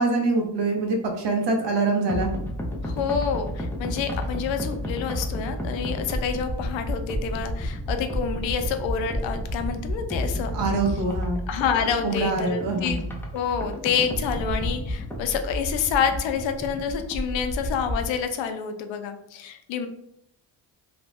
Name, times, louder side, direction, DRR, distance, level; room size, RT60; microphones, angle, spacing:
voice 1, 0.0-2.3 10.5-11.4 12.0-13.0, right 3 dB, 65° right, 3 dB, 0.7 m, -24 dB
sound 1, 2.1-18.1, left 1 dB, 5° left, 0.4 m, -31 dB
voice 2, 2.8-10.5 11.5-13.0 13.3-19.9, left 7 dB, 80° left, 7 dB, 0.5 m, -28 dB
2.5 x 2.1 x 3.2 m, 0.77 s
cardioid pair, 100°, 45 cm